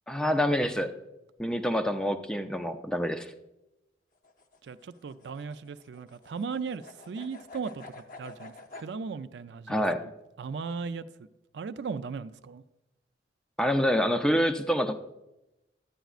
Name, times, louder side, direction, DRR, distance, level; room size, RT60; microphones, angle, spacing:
voice 1, 0.1-0.9 1.4-3.3 9.7-10.0 13.6-14.9, equal, 5° left, 0.4 m, -26 dB
sound 1, 4.1-8.9, left 3 dB, 50° left, 0.7 m, -49 dB
voice 2, 4.6-10.1 10.4-11.0 11.5-12.6, right 5 dB, 75° right, 0.4 m, -37 dB
11.0 x 9.0 x 2.4 m
head